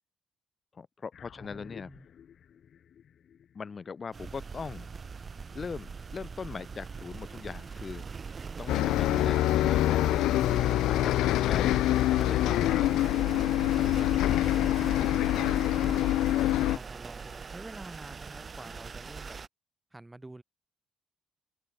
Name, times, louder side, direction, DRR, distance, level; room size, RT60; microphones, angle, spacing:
voice 1, 0.7-1.9 3.5-4.9 5.5-8.2 8.6-10.0 10.9-11.9 12.2-13.0, left 5 dB, 40° left, 3.1 m, -41 dB
sound 1, 1.1-5.7, left 8 dB, 60° left, 6.8 m, -53 dB
voice 2, 1.3-2.1 14.1-15.0 15.4-19.4 19.9-20.4, right 2 dB, 15° right, 3.0 m, -48 dB
sound 2, 4.1-19.5, right 5 dB, 40° right, 0.4 m, -41 dB
Bus, 8.7-16.8, left 15 dB, 90° left, 0.3 m, -25 dB
cardioid pair, 90°, 0 cm